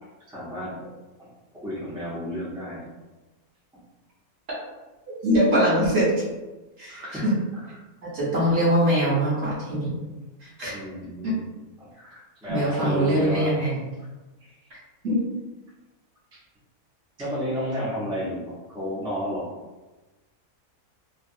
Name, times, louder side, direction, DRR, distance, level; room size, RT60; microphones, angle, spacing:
voice 1, 0.3-0.8 1.6-2.9 6.9-7.3 7.5-7.6 10.7-11.5 11.8-13.5 14.4-14.5 17.2-19.5, equal, 5° right, -8 dB, 0.5 m, -31 dB
voice 2, 5.2-6.2 6.8-7.3 8.0-10.0 10.6-10.7 11.2-11.4 12.5-13.8 15.0-15.2, equal, 50° right, -7 dB, 1.0 m, -22 dB
3.1 x 2.2 x 2.6 m, 1.1 s
omnidirectional pair, 1.6 m